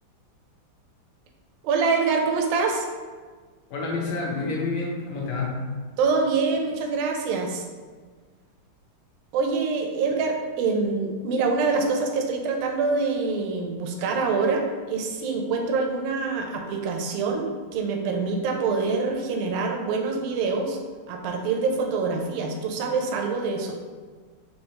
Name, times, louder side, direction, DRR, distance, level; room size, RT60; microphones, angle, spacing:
voice 1, 1.6-2.9 6.0-7.6 9.3-20.8 21.1-23.8, right 4 dB, 75° right, 2 dB, 1.3 m, -25 dB
voice 2, 3.7-5.7, left 3 dB, 75° left, -2 dB, 1.6 m, -28 dB
4.3 x 3.0 x 2.8 m, 1.5 s
omnidirectional pair, 2.4 m